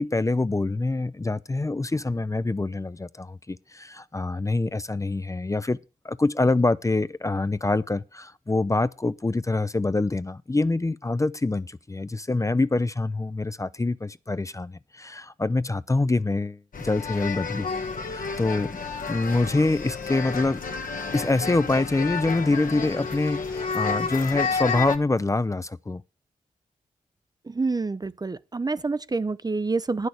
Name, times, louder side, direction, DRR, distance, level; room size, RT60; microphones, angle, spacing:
voice 1, 0.0-5.8 6.0-17.7 18.1-18.8 19.1-20.6 21.1-26.0, left 2 dB, 20° left, 0.5 m, -25 dB
sound 1, 16.7-25.0, left 5 dB, 65° left, 1.2 m, -30 dB
voice 2, 27.5-30.1, right 3 dB, 25° right, 0.5 m, -27 dB
9.3 x 6.4 x 8.1 m
supercardioid pair, 40°, 15 cm